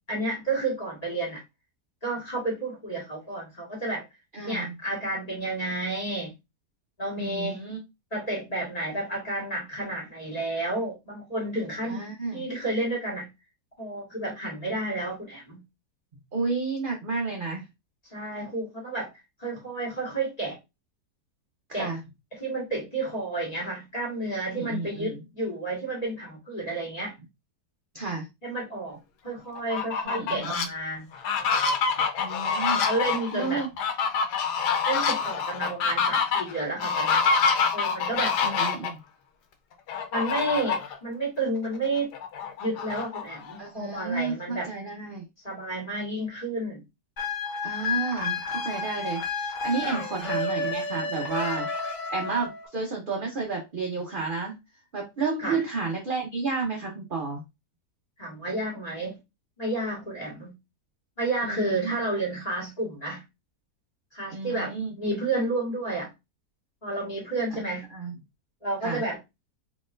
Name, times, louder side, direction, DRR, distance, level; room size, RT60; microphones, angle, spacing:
voice 1, 0.1-1.4 2.0-4.0 4.4-6.3 7.0-7.6 8.1-12.0 12.3-13.3 13.8-15.6 18.1-19.1 19.4-20.6 21.7-21.9 22.3-27.1 28.4-29.0 29.2-31.1 31.4-31.5 32.7-33.6 34.8-37.2 37.7-38.4 40.1-42.1 42.6-44.7 45.4-46.8 49.8-50.0 55.4-55.6 58.2-59.2 59.6-60.5 61.2-63.2 64.1-66.1 66.8-67.9 68.6-69.2, right 2 dB, 25° left, -3 dB, 1.7 m, -31 dB
voice 2, 4.3-4.7 7.2-7.8 11.8-12.5 16.3-17.7 21.7-22.0 24.5-25.2 27.9-28.3 30.0-30.7 32.2-32.9 33.3-33.7 38.4-39.0 43.6-45.3 47.6-54.6 54.9-57.4 61.4-61.9 64.3-64.9 67.5-67.6 67.9-68.1 68.8-69.0, right 4 dB, 45° right, 0 dB, 0.7 m, -31 dB
Fowl, 29.6-30.6 31.1-38.9 39.9-40.9 41.4-41.5 41.8-43.6, left 5 dB, 75° left, 1.3 m, -26 dB
sound 1, 47.2-52.7, left 3 dB, 50° left, 0.5 m, -31 dB
4.1 x 3.1 x 2.5 m, 0.23 s
omnidirectional pair, 1.8 m